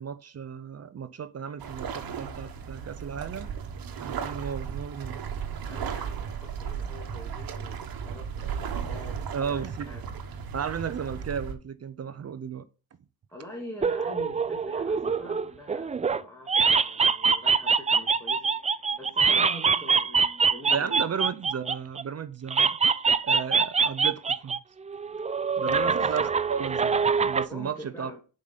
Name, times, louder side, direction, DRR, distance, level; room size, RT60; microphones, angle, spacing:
voice 1, 0.0-3.5 4.0-5.2 9.3-9.9 10.5-12.6 20.7-22.8 23.2-24.6 25.6-28.1, right 7 dB, 40° right, 0.7 m, -34 dB
sound 1, 1.6-11.5, right 7 dB, 60° right, 1.5 m, -35 dB
voice 2, 5.7-10.0 13.3-18.6 18.9-21.0 25.6-25.9 27.5-28.2, left 1 dB, 5° left, 2.6 m, -44 dB
sound 2, 13.8-16.2 16.5-22.0 22.5-24.6 24.9-27.5, right 5 dB, 20° right, 0.4 m, -24 dB
10.5 x 5.2 x 4.0 m
cardioid pair, 105°, 39 cm